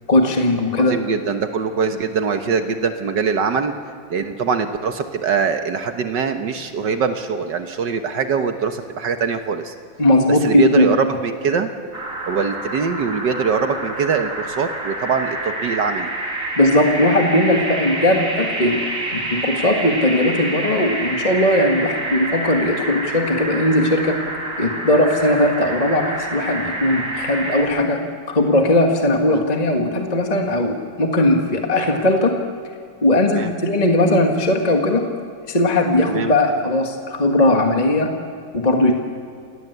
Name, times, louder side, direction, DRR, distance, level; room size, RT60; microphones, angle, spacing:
voice 1, 0.1-1.0 10.0-10.9 16.6-18.8 19.1-24.2 24.6-28.0 28.3-32.4 33.0-35.1 35.5-38.1 38.5-38.9, left 1 dB, 20° left, 3 dB, 1.8 m, -18 dB
voice 2, 0.8-3.7 4.1-9.7 10.3-11.7 12.3-16.1 29.3-29.4 33.3-33.5 36.1-36.3, right 5 dB, 70° right, 7 dB, 1.8 m, -22 dB
sound 1, 11.9-27.6, right 1 dB, 45° right, 3.4 m, -28 dB
28.5 x 18.5 x 8.2 m, 2.2 s
omnidirectional pair, 2.0 m